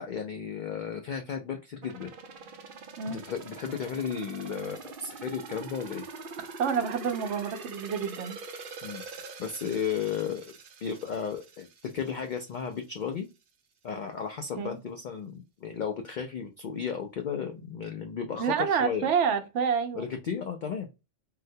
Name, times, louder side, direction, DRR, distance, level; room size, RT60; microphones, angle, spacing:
voice 1, 0.0-2.1 3.1-6.1 8.8-9.0 9.4-10.4 10.8-11.7 11.9-13.3 13.8-19.1 20.0-20.9, left 7 dB, 60° left, 0.5 m, -34 dB
sound 1, 1.8-12.6 12.9-13.0, right 4 dB, 55° right, 0.7 m, -44 dB
voice 2, 6.6-8.4 14.6-14.8 18.4-20.1, right 6 dB, 80° right, 0.9 m, -28 dB
3.8 x 2.1 x 2.7 m
omnidirectional pair, 1.2 m